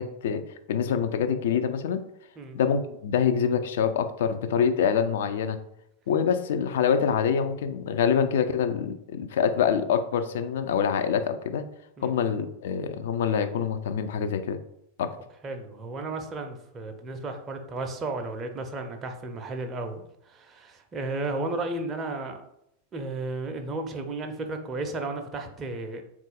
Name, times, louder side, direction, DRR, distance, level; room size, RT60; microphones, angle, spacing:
voice 1, 0.0-2.0 2.5-5.6 6.1-11.6 12.0-14.6 15.0-15.1, left 7 dB, 55° left, 9 dB, 0.4 m, -25 dB
voice 2, 15.4-22.4 22.9-26.0, right 2 dB, 25° right, 4 dB, 0.5 m, -34 dB
3.8 x 2.4 x 3.8 m, 0.78 s
figure-of-eight pair, 90°, 0 cm